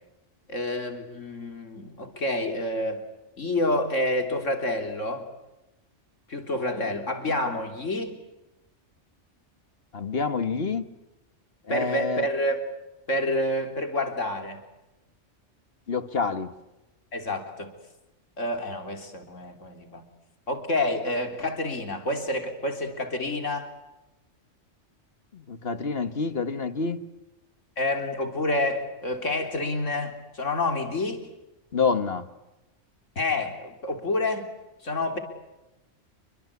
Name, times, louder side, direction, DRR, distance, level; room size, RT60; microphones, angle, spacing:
voice 1, 0.5-3.0 3.4-5.3 6.3-8.2 11.7-12.6 13.1-14.6 17.1-17.7 18.4-20.0 20.5-23.7 27.8-31.2 33.2-34.5 34.8-35.2, left 1 dB, 80° left, 6 dB, 3.8 m, -28 dB
voice 2, 9.9-10.8 11.7-12.3 15.9-16.5 25.3-27.0 31.7-32.3, left 4 dB, 50° left, 12 dB, 1.7 m, -27 dB
28.5 x 24.0 x 8.4 m, 0.98 s
omnidirectional pair, 1.3 m